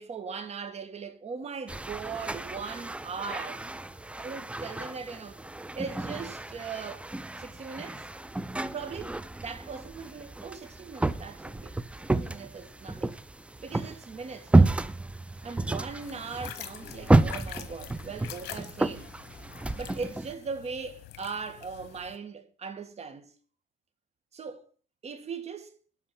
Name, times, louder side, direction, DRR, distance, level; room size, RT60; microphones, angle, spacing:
voice 1, 0.0-3.6 4.2-5.4 5.8-7.1 7.4-8.1 8.6-9.2 9.4-11.8 12.2-13.1 13.6-14.8 15.4-19.1 19.8-23.3 24.3-24.7 25.0-25.7, right 5 dB, 40° right, 1.9 m, -39 dB
sound 1, 1.7-20.3, right 2 dB, 5° right, 0.5 m, -30 dB
sound 2, 16.0-22.2, left 13 dB, 75° left, 1.0 m, -45 dB
12.0 x 4.7 x 7.1 m
cardioid pair, 110°, 17 cm